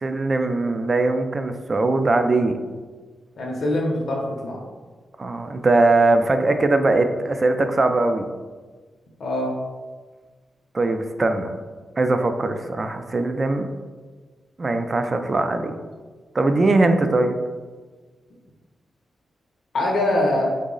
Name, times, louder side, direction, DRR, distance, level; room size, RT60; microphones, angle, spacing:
voice 1, 0.0-2.6 5.2-8.2 10.7-11.5 12.0-13.7 14.6-15.8 16.3-17.3, right 2 dB, 40° right, 7 dB, 0.3 m, -20 dB
voice 2, 3.4-4.6 9.2-9.6 19.7-20.4, left 1 dB, 65° left, -2 dB, 0.6 m, -23 dB
3.7 x 2.0 x 3.7 m, 1.4 s
cardioid pair, 85°, 0 cm